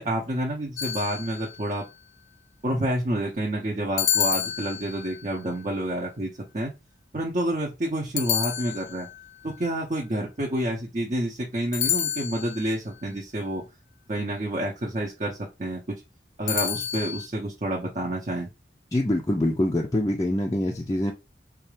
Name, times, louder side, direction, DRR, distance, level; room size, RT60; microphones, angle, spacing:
voice 1, 0.0-1.8 2.6-6.7 7.1-9.1 9.4-13.6 14.1-15.8 16.4-18.5, right 1 dB, 40° right, 0.7 m, -29 dB
sound 1, 0.8-1.7 4.0-5.2 8.2-9.2 11.7-12.7 16.5-17.3, left 10 dB, 80° left, 0.5 m, -28 dB
voice 2, 18.9-21.1, left 1 dB, 20° left, 0.4 m, -24 dB
4.2 x 2.4 x 3.2 m
head